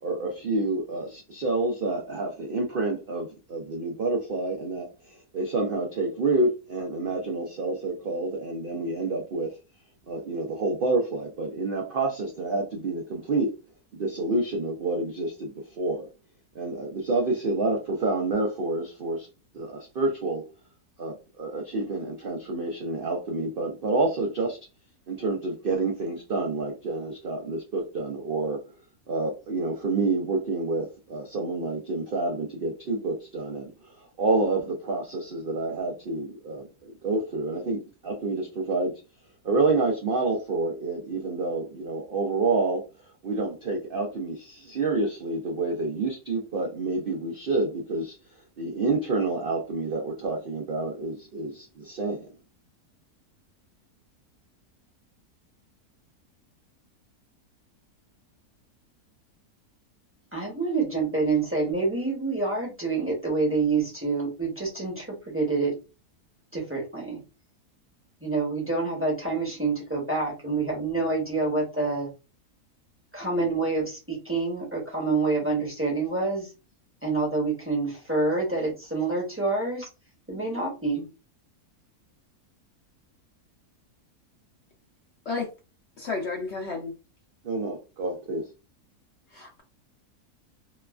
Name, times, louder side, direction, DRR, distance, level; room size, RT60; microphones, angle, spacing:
voice 1, 0.0-4.9 5.3-9.5 10.1-13.5 13.9-16.1 16.6-19.3 19.5-20.4 21.0-24.6 25.1-28.6 29.1-33.7 34.2-38.9 39.4-42.8 43.2-48.1 48.6-52.3 87.4-88.4, right 3 dB, 80° right, 0.4 m, -28 dB
voice 2, 60.3-65.7 66.5-67.2 68.2-72.1 73.1-76.5 77.0-79.9 80.3-81.0, right 3 dB, 15° right, 0.6 m, -27 dB
voice 3, 86.0-86.9 89.3-89.6, left 4 dB, 65° left, 0.7 m, -31 dB
2.9 x 2.3 x 2.3 m
omnidirectional pair, 1.7 m